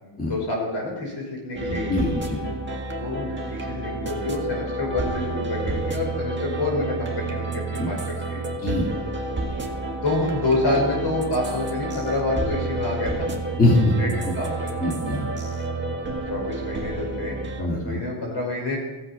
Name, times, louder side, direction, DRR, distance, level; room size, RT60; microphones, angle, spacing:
voice 1, 0.0-1.9 3.0-8.4 10.0-13.4 13.9-14.7 16.3-18.8, left 2 dB, 55° left, -1 dB, 5.8 m, -28 dB
sound 1, 1.6-17.6, right 2 dB, 20° right, 1.7 m, -30 dB
voice 2, 1.7-2.4 7.8-7.9 8.6-8.9 13.6-13.9 14.8-15.2 17.6-18.0, left 2 dB, 15° left, -4 dB, 2.5 m, -22 dB
16.5 x 7.9 x 5.4 m, 1.1 s
wide cardioid pair, 135°, 49 cm